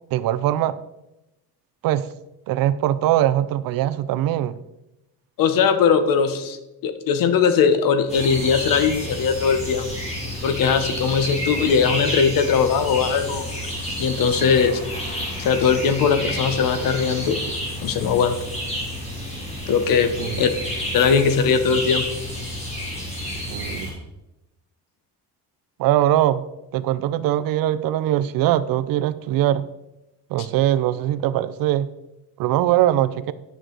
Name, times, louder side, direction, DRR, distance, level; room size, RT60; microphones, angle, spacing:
voice 1, 0.1-0.8 1.8-2.1 2.5-4.6 20.2-20.4 23.5-23.9 25.8-26.4 26.7-29.7 30.3-31.9 32.4-33.3, right 13 dB, 65° right, 15 dB, 0.5 m, -21 dB
voice 2, 5.4-6.6 6.8-9.9 10.4-13.5 14.0-14.8 15.4-17.4 17.8-18.4 19.7-20.5 20.9-22.1, left 6 dB, 65° left, 10 dB, 0.9 m, -20 dB
sound 1, 8.1-23.9, equal, 15° left, 2.5 m, -30 dB
10.0 x 6.2 x 3.9 m, 0.94 s
cardioid pair, 175°, 37 cm